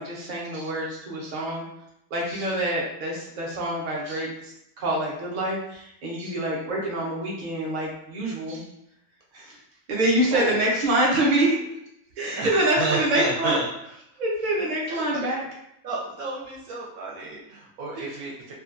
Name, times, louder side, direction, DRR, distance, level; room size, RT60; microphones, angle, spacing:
voice 1, 0.0-1.6 2.1-4.5 4.8-8.6 9.3-9.6 9.9-11.5 12.2-13.5 14.2-15.4 17.9-18.1, right 1 dB, 50° right, -3 dB, 0.5 m, -26 dB
voice 2, 12.3-13.6 14.6-15.2 15.8-18.5, right 3 dB, 75° right, -4 dB, 1.0 m, -32 dB
2.6 x 2.3 x 2.4 m, 0.80 s
omnidirectional pair, 1.6 m